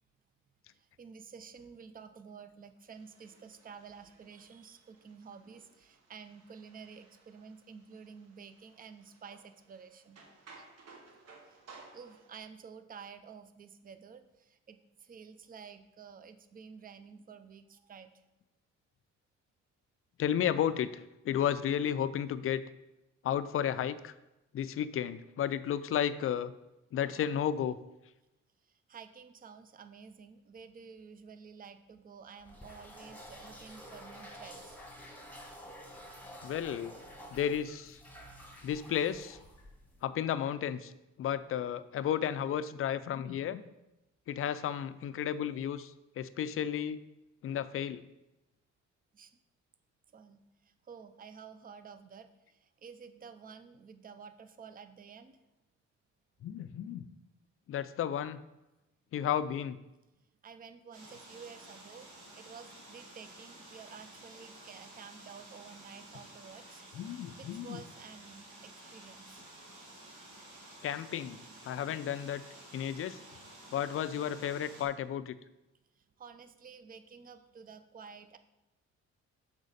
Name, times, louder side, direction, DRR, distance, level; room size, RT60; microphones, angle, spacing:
voice 1, 0.7-10.2 11.5-11.6 11.9-18.1 28.6-34.8 49.1-49.3 50.1-55.4 60.4-69.4 75.9-78.4, right 6 dB, 30° right, 10 dB, 0.5 m, -51 dB
sound 1, 2.9-12.4, right 3 dB, 55° right, 1.2 m, -59 dB
voice 2, 20.2-22.6 23.2-24.1 24.5-26.5 26.9-27.8 36.4-36.9 37.3-38.0 38.6-39.4 40.0-40.9 41.2-43.6 44.3-47.0 47.4-48.0 56.4-57.0 57.7-58.4 59.1-59.8 66.9-67.8 70.8-71.4 71.6-72.4 72.7-73.2 73.7-75.4, left 9 dB, 50° left, 14 dB, 0.4 m, -33 dB
sound 2, 32.4-40.0, equal, 5° left, 1.3 m, -50 dB
sound 3, 60.9-74.9, right 1 dB, 75° right, 2.4 m, -52 dB
6.4 x 5.0 x 4.1 m, 0.97 s
cardioid pair, 90°, 30 cm